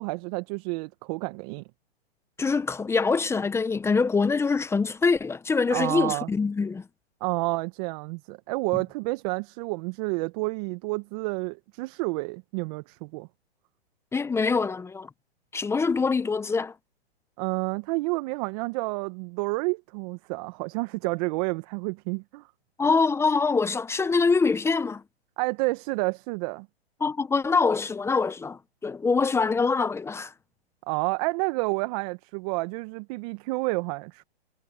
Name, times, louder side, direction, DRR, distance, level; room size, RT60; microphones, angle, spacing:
voice 1, 0.0-1.6 5.7-6.3 7.2-13.3 17.4-22.5 25.4-26.7 30.9-34.2, right 27 dB, 35° right, 1.4 m, -30 dB
voice 2, 2.4-6.9 14.1-15.1 15.5-16.7 22.8-25.0 27.0-30.3, left 4 dB, 10° left, 1.1 m, -24 dB
hypercardioid pair, 130°, 32 cm